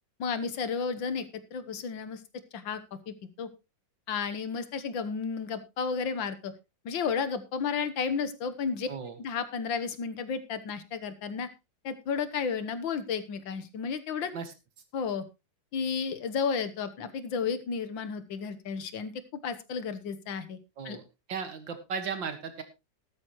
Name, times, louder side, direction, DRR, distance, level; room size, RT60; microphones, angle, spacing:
voice 1, 0.2-1.3 1.5-2.2 2.5-2.8 3.1-3.5 4.1-6.5 6.9-8.9 9.2-11.5 11.8-14.3 14.9-15.2 15.7-19.1 19.4-20.6 20.9-21.0, left 6 dB, 90° left, 11 dB, 1.9 m, -32 dB
voice 2, 21.3-22.6, right 6 dB, 80° right, 9 dB, 2.5 m, -35 dB
14.0 x 12.5 x 3.1 m, 0.25 s
omnidirectional pair, 2.0 m